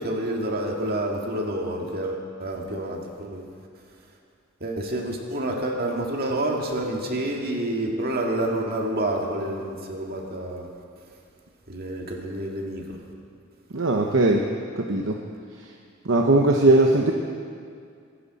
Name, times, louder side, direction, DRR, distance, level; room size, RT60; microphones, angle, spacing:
voice 1, 0.0-3.5 4.6-10.7 11.7-13.0, right 1 dB, 50° right, 0 dB, 2.0 m, -28 dB
voice 2, 13.7-14.4 14.8-15.2 16.0-17.1, right 2 dB, 70° right, 1 dB, 0.9 m, -19 dB
23.5 x 11.0 x 4.2 m, 2.3 s
head